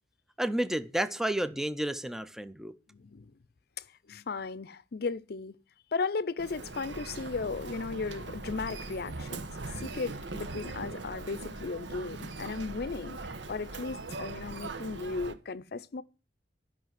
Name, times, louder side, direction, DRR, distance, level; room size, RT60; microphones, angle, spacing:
voice 1, 0.4-2.7, right 1 dB, ahead, 0.5 m, -31 dB
voice 2, 2.9-3.3 4.1-5.6 5.9-9.5 9.8-13.2 13.5-16.0, left 4 dB, 60° left, 0.6 m, -35 dB
Human voice, 6.4-15.3, right 3 dB, 90° right, 1.2 m, -40 dB
12.0 x 5.7 x 7.5 m
head